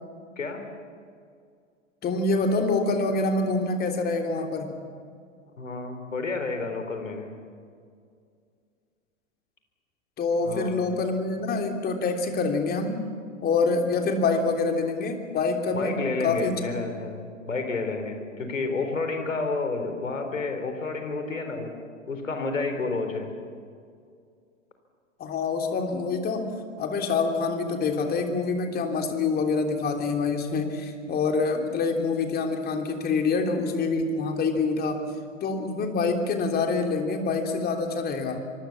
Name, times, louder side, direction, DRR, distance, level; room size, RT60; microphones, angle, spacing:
voice 1, 2.0-4.8 10.2-13.1 13.4-16.6 25.2-26.5 26.8-35.1 35.4-38.4, left 4 dB, 25° left, 4 dB, 3.2 m, -26 dB
voice 2, 5.6-7.3 10.4-10.7 15.7-21.7 22.1-23.3, left 3 dB, 75° left, 6 dB, 4.1 m, -30 dB
25.5 x 24.0 x 7.3 m, 2.3 s
figure-of-eight pair, 100°, 39 cm